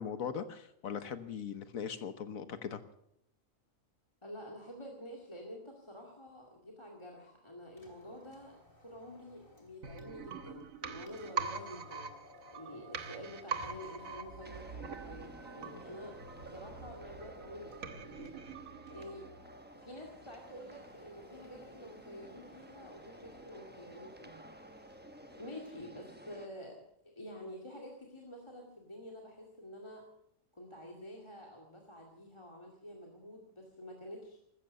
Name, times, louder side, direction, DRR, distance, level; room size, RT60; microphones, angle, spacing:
voice 1, 0.0-2.8, left 7 dB, 80° left, 11 dB, 1.6 m, -39 dB
voice 2, 4.2-12.1 12.5-18.4 18.9-19.3 19.7-25.0 25.3-26.8 27.0-30.0 30.5-34.4, equal, 20° left, 0 dB, 2.3 m, -49 dB
sound 1, 7.7-25.9, left 2 dB, 40° left, 2.9 m, -59 dB
sound 2, 9.8-19.5 19.8-19.9, right 5 dB, 75° right, 1.7 m, -43 dB
sound 3, 14.4-26.5, right 1 dB, 10° right, 0.9 m, -54 dB
15.0 x 13.5 x 6.8 m, 0.75 s
omnidirectional pair, 1.4 m